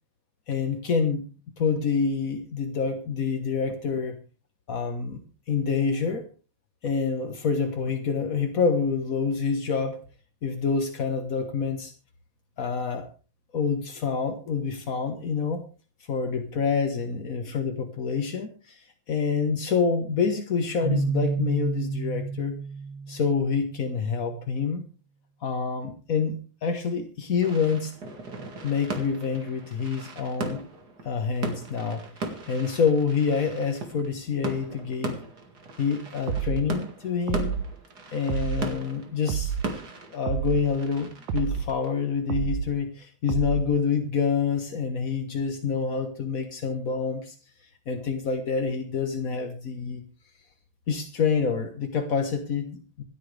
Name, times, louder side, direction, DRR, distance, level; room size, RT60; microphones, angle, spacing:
voice 1, 0.5-1.2 1.6-4.2 4.7-5.2 5.5-6.2 6.8-10.0 10.4-11.9 12.6-13.1 13.5-15.6 16.1-22.6 23.1-24.8 25.4-26.4 26.6-27.9 28.6-30.6 31.0-35.2 35.8-37.6 38.1-39.5 40.1-47.3 47.9-50.0 50.9-53.0, left 5 dB, 55° left, 5 dB, 0.9 m, -27 dB
Keyboard (musical), 20.8-23.7, right 4 dB, 15° right, 1.6 m, -30 dB
sound 1, 27.4-42.8, right 3 dB, 35° right, 2.3 m, -38 dB
sound 2, 36.3-36.7 37.3-37.7 38.3-38.7 39.3-39.7 40.3-40.7 41.3-41.7 42.3-42.7 43.3-43.7, right 8 dB, 85° right, 2.5 m, -28 dB
26.5 x 9.3 x 3.3 m, 0.34 s
omnidirectional pair, 3.4 m